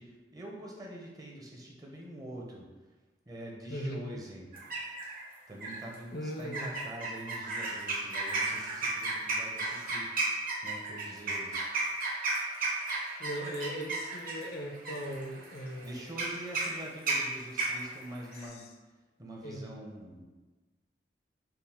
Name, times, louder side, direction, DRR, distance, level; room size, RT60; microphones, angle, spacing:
voice 1, 0.0-2.7 3.3-4.5 5.5-10.1 10.6-11.7 15.8-18.7 19.2-20.3, right 1 dB, 20° right, -2 dB, 0.5 m, -45 dB
voice 2, 3.7-4.0 6.1-6.7 13.2-15.9 18.4-18.7 19.4-19.7, equal, 60° left, 2 dB, 0.5 m, -38 dB
sound 1, 4.5-5.2 5.6-5.9 6.5-18.5, right 3 dB, 50° right, 0.8 m, -34 dB
4.4 x 2.0 x 3.5 m, 1.2 s
head